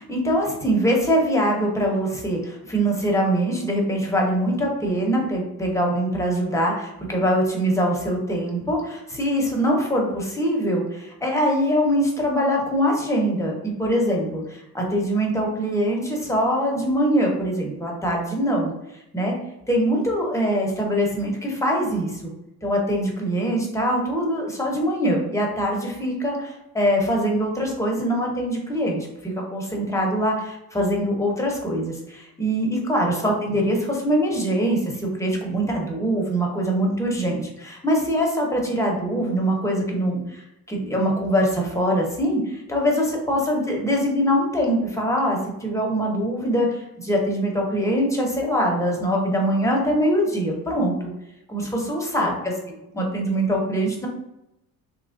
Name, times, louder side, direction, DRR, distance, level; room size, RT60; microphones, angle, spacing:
voice 1, 0.0-18.7 19.1-19.4 19.7-22.3 22.6-51.1 51.5-52.5 52.9-54.1, equal, 10° left, -1 dB, 0.9 m, -23 dB
2.9 x 2.4 x 3.6 m, 0.87 s
cardioid pair, 110°, 35 cm